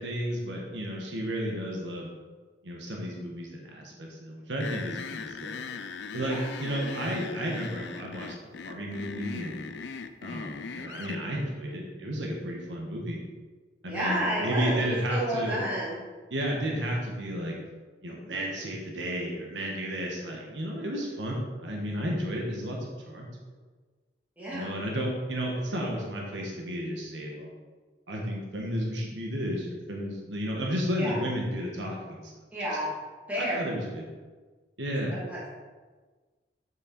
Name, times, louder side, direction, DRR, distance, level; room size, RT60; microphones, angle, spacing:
voice 1, 0.0-2.1 2.6-5.5 6.1-8.3 8.6-9.6 10.2-13.2 13.8-15.6 16.3-17.6 18.0-23.3 24.5-27.5 28.1-32.3 33.4-34.0 34.8-35.2, equal, 85° right, -1 dB, 1.4 m, -32 dB
sound 1, 4.6-11.2, left 5 dB, 75° left, 0.5 m, -39 dB
voice 2, 6.1-7.1 13.9-16.0 24.4-24.7 31.0-31.2 32.5-32.9 33.3-33.6 35.1-35.5, right 1 dB, 10° right, -8 dB, 2.7 m, -31 dB
7.2 x 6.6 x 4.0 m, 1.4 s
head